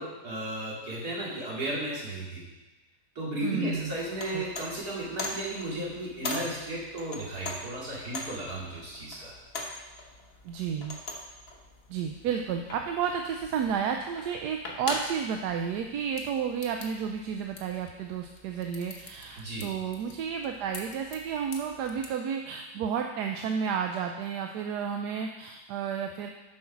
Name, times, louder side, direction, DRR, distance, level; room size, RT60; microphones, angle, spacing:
voice 1, 0.0-2.5 3.2-9.3 19.4-19.7, right 1 dB, 65° right, -6 dB, 2.9 m, -34 dB
voice 2, 3.4-3.9 4.3-4.4 10.4-11.0 11.9-26.3, right 7 dB, 80° right, 4 dB, 1.2 m, -32 dB
sound 1, 3.7-22.2, left 2 dB, 45° left, 1.1 m, -42 dB
7.8 x 5.6 x 5.8 m, 1.1 s
omnidirectional pair, 1.8 m